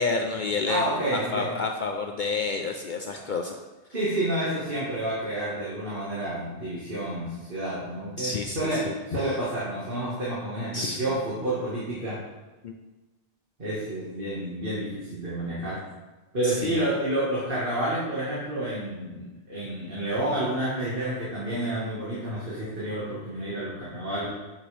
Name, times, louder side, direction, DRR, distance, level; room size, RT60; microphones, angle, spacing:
voice 1, 0.0-3.6 8.2-8.9 10.7-11.0 12.6-12.7 16.4-16.9, left 4 dB, 55° left, 3 dB, 0.6 m, -29 dB
voice 2, 0.7-1.5 3.1-3.3 3.9-12.2 13.6-15.8 16.3-24.3, right 1 dB, 50° right, -9 dB, 1.8 m, -29 dB
8.5 x 5.9 x 3.3 m, 1.2 s
omnidirectional pair, 1.2 m